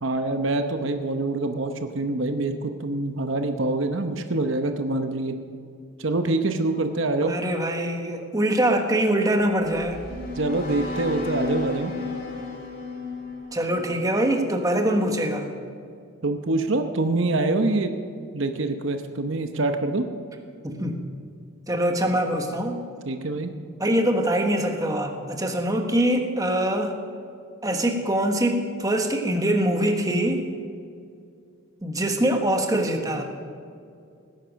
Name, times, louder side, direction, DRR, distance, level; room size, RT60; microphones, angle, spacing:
voice 1, 0.0-5.3 6.0-7.3 10.3-11.9 16.2-17.9 18.3-20.1 23.0-23.5, right 2 dB, 60° right, 7 dB, 0.9 m, -25 dB
voice 2, 7.2-10.0 13.5-15.5 20.6-21.0 21.7-22.8 23.8-26.9 27.6-30.4 31.8-33.2, right 1 dB, 15° right, 3 dB, 1.3 m, -23 dB
sound 1, 9.4-14.6, left 3 dB, 40° left, 2.8 m, -34 dB
18.5 x 10.5 x 6.3 m, 2.4 s
head